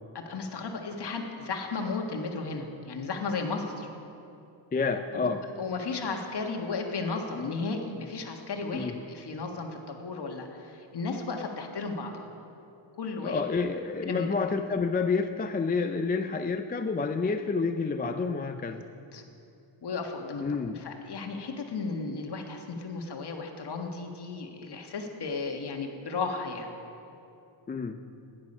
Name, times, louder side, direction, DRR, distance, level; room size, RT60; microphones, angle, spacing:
voice 1, 0.1-3.9 5.2-12.3 13.0-13.4 14.1-14.3 19.1-19.2 19.8-20.4 20.8-26.7, left 4 dB, 55° left, 3 dB, 1.7 m, -34 dB
voice 2, 4.7-5.4 8.7-9.0 13.2-18.9 20.4-20.8 27.7-28.0, left 4 dB, 20° left, 6 dB, 0.4 m, -29 dB
17.0 x 10.5 x 5.5 m, 2.8 s
wide cardioid pair, 130°, 49 cm